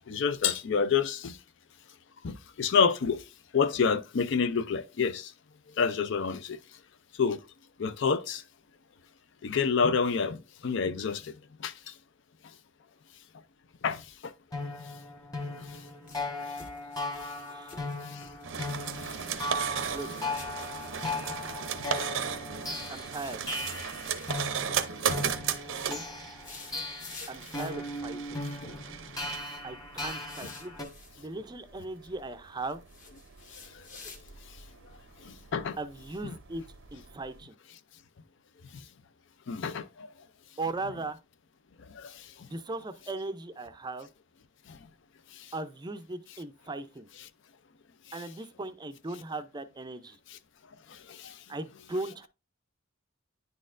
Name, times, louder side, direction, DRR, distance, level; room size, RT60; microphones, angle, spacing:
voice 1, 0.1-1.4 2.2-3.2 3.5-5.3 5.8-6.6 7.2-7.4 7.8-8.4 9.4-11.9 13.8-14.3 15.5-15.6 17.2-17.3 18.1-18.3 19.0-19.4 22.7-22.8 25.1-25.2 26.7-26.8 28.6-28.7 33.7-33.8 35.2-35.8 36.2-36.3 39.5-40.1 41.9-42.5 44.7-44.8 45.3-45.5 50.3-50.4 50.9-51.4, left 5 dB, 60° left, 0.5 m, -29 dB
sound 1, 14.5-30.8, left 2 dB, 20° left, 1.3 m, -37 dB
sound 2, 15.6-16.3 16.6-18.4 18.7-19.5 19.7-21.2 23.1-24.4 26.3-27.9 30.0-31.1 32.9-34.5, left 4 dB, 40° left, 1.2 m, -49 dB
sound 3, 18.4-37.4, right 7 dB, 70° right, 0.6 m, -37 dB
voice 2, 19.9-20.4 22.9-23.4 25.8-26.0 27.3-28.4 29.6-30.8 31.2-32.8 35.8-36.6 36.9-37.5 40.6-41.2 42.5-44.1 45.5-47.1 48.1-50.2 51.5-52.3, right 2 dB, 20° right, 0.4 m, -38 dB
9.8 x 4.2 x 2.5 m
head